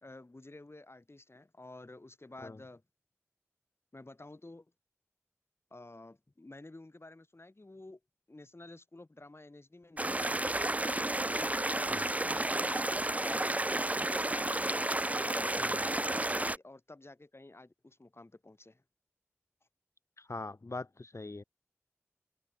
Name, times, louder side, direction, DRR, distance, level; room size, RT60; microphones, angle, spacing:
voice 1, 0.0-2.8 3.9-4.7 5.7-8.0 8.3-10.7 11.3-14.8 15.1-18.8, left 2 dB, 55° left, 3.7 m, -52 dB
sound 1, 10.0-16.6, right 1 dB, 30° right, 0.5 m, -31 dB
voice 2, 20.2-21.4, left 3 dB, 75° left, 1.4 m, -42 dB
wide cardioid pair, 40°, 5 cm